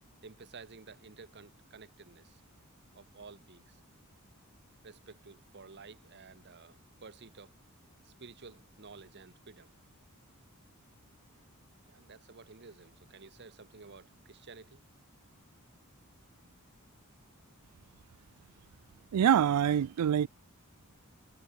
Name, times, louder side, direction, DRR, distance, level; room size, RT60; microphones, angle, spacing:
voice 1, 0.2-2.4 2.9-3.8 4.8-7.6 8.0-9.7 11.8-14.8, right 4 dB, 50° right, 1.2 m, -52 dB
voice 2, 19.1-20.3, right 9 dB, 90° right, 0.3 m, -25 dB
head